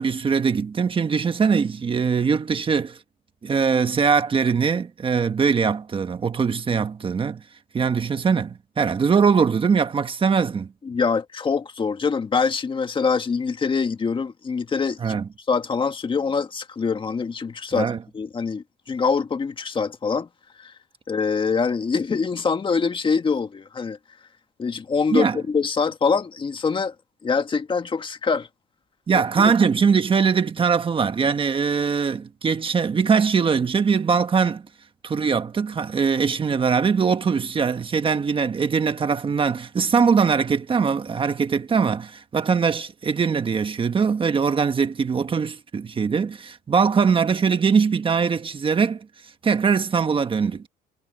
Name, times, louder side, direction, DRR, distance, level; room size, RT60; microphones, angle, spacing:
voice 1, 0.0-3.0 3.4-7.4 7.7-10.7 15.0-15.3 17.7-18.0 25.1-25.4 29.1-34.6 35.0-49.0 49.4-50.6, right 6 dB, 30° right, 1.4 m, -21 dB
voice 2, 10.8-15.2 15.5-20.3 20.6-20.7 21.1-24.0 24.6-26.9 27.2-28.5 29.1-29.5, left 5 dB, 30° left, 1.7 m, -24 dB
cardioid pair, 110°, 17 cm